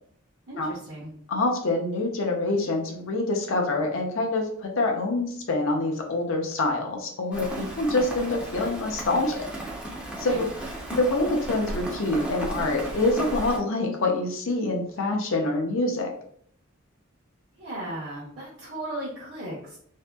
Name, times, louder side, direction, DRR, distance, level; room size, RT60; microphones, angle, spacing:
voice 1, 0.5-1.1 10.2-10.4 17.6-19.8, right 1 dB, 60° right, -6 dB, 0.8 m, -36 dB
voice 2, 1.3-9.5 10.2-10.5 10.9-16.1, left 2 dB, 65° left, 2 dB, 0.6 m, -26 dB
Rain, 7.3-13.6, right 1 dB, 5° right, 0.5 m, -35 dB
2.7 x 2.5 x 2.2 m, 0.63 s
head